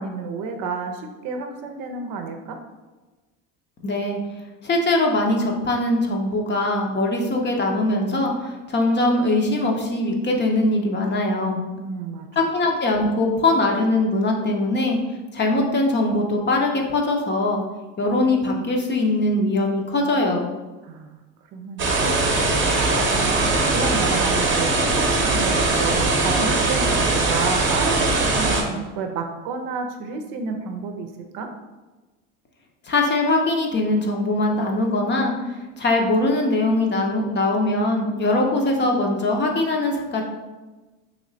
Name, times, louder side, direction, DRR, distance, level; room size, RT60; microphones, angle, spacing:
voice 1, 0.0-2.6 11.8-12.3 20.8-21.2 21.5-22.2 22.5-31.1 31.3-31.5, right 4 dB, 60° right, 5 dB, 0.7 m, -30 dB
voice 2, 3.8-4.2 4.6-11.6 12.4-15.0 15.3-17.6 18.0-20.5 32.9-35.3 35.8-40.2, left 2 dB, 30° left, 1 dB, 0.8 m, -21 dB
sound 1, 21.8-28.6, right 3 dB, 30° right, 0.9 m, -20 dB
3.1 x 3.1 x 3.9 m, 1.2 s
supercardioid pair, 90°, 38 cm